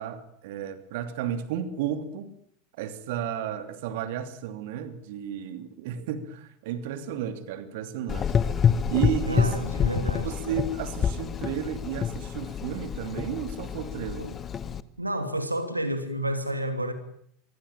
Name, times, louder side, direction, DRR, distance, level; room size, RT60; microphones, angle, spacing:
voice 1, 0.0-2.3 2.8-8.4 8.9-9.5 10.2-14.3, right 9 dB, 55° right, 2.9 m, -33 dB
Gurgling / Engine, 8.1-14.8, left 7 dB, 30° left, 1.5 m, -27 dB
voice 2, 9.3-10.3 14.2-14.4 15.0-16.9, right 1 dB, 85° right, 2.9 m, -30 dB
25.5 x 23.5 x 9.2 m
figure-of-eight pair, 80°, 0 cm